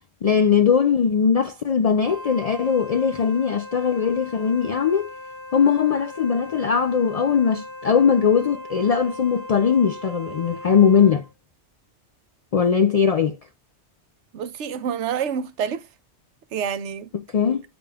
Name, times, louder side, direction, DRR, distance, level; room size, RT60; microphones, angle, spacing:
voice 1, 0.2-5.1 5.5-11.2 12.5-13.4 17.3-17.6, left 6 dB, 70° left, 0.3 m, -20 dB
Wind instrument woodwind instrument, 2.0-11.3, left 1 dB, 20° right, 1.2 m, -39 dB
voice 2, 14.3-15.9 16.5-17.1, right 7 dB, 85° right, 1.0 m, -27 dB
8.7 x 5.0 x 2.3 m
omnidirectional pair, 1.2 m